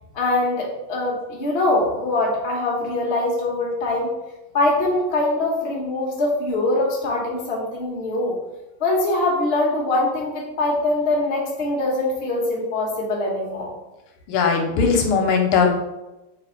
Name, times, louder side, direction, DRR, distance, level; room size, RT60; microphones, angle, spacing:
voice 1, 0.1-4.1 4.5-8.4 8.8-13.7, left 2 dB, 40° left, -3 dB, 0.9 m, -23 dB
voice 2, 14.3-15.7, left 5 dB, 85° left, 3 dB, 1.6 m, -19 dB
3.4 x 3.2 x 4.8 m, 0.99 s
omnidirectional pair, 2.4 m